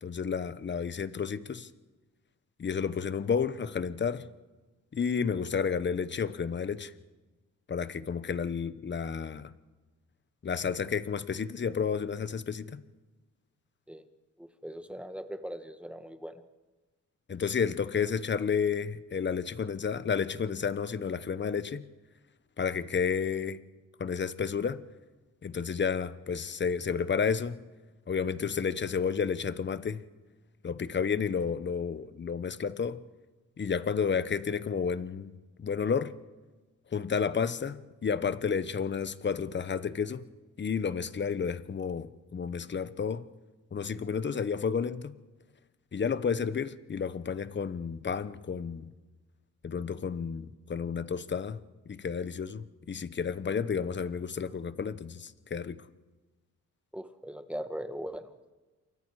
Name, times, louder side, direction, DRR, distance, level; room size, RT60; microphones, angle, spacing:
voice 1, 0.0-1.7 2.6-4.3 4.9-6.9 7.7-9.5 10.4-12.8 17.3-21.9 22.6-23.6 24.0-24.8 25.4-27.6 28.1-30.0 30.6-33.0 33.6-36.1 36.9-40.2 40.6-43.2 43.7-45.2 45.9-48.9 49.6-51.6 51.9-55.9, left 6 dB, 40° left, 1.0 m, -31 dB
voice 2, 14.4-16.3 56.9-58.3, equal, 5° right, 1.6 m, -40 dB
28.0 x 24.0 x 4.9 m
cardioid pair, 95°, 30 cm